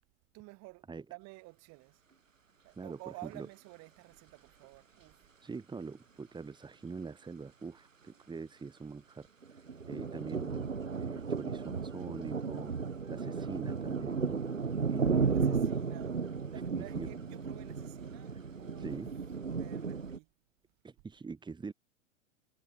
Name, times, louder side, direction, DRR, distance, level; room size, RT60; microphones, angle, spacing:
voice 1, 0.3-2.0 2.6-5.3 7.7-8.4 14.9-20.3, right 25 dB, 45° right, 5.6 m, -52 dB
voice 2, 2.8-3.5 5.4-14.4 14.9-15.7 16.8-17.1 18.8-19.1 20.8-21.7, right 4 dB, 10° right, 3.0 m, -44 dB
sound 1, 9.4-20.2, right 5 dB, 85° right, 1.4 m, -34 dB
figure-of-eight pair, 95°, 38 cm